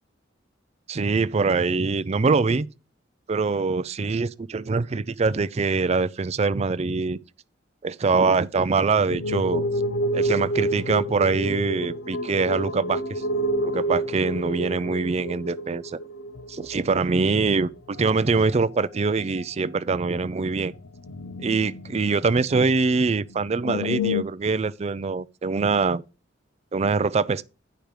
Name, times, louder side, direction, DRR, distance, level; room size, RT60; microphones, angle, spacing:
voice 1, 0.9-2.7 3.3-7.2 7.8-9.6 10.1-13.2 13.6-16.0 16.5-20.7 21.4-26.0 26.7-27.4, right 4 dB, 35° right, 0.4 m, -24 dB
sound 1, 9.1-17.6 17.9-18.5 18.8-18.9 19.4-19.5 20.5-22.6 23.0-23.1 23.3-24.2, equal, 80° left, 0.6 m, -29 dB
10.5 x 5.2 x 4.7 m
head